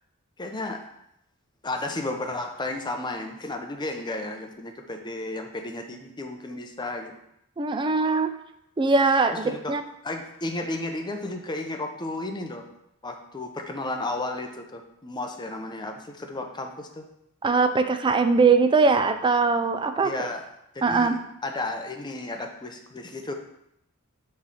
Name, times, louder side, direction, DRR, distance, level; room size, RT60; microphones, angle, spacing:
voice 1, 0.4-0.8 1.6-7.1 9.4-9.7 10.0-12.6 13.0-17.1 20.0-20.4 20.7-21.2 21.4-23.3, left 2 dB, 20° left, 4 dB, 0.6 m, -33 dB
voice 2, 7.6-8.3 8.8-9.8 17.4-20.3 20.8-21.2, right 4 dB, 20° right, 8 dB, 0.4 m, -21 dB
6.1 x 3.2 x 5.6 m, 0.79 s
head